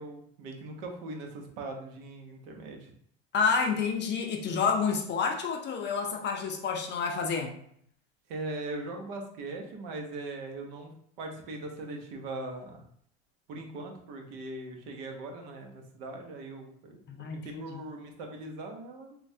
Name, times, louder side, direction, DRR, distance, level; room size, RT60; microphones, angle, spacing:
voice 1, 0.0-2.9 8.3-10.9 11.2-12.8 13.5-17.0 17.3-19.2, right 2 dB, 70° right, 3 dB, 0.8 m, -40 dB
voice 2, 3.3-7.5 17.1-17.8, left 5 dB, 35° left, 3 dB, 0.5 m, -29 dB
3.2 x 2.2 x 2.6 m, 0.66 s
supercardioid pair, 110°, 32 cm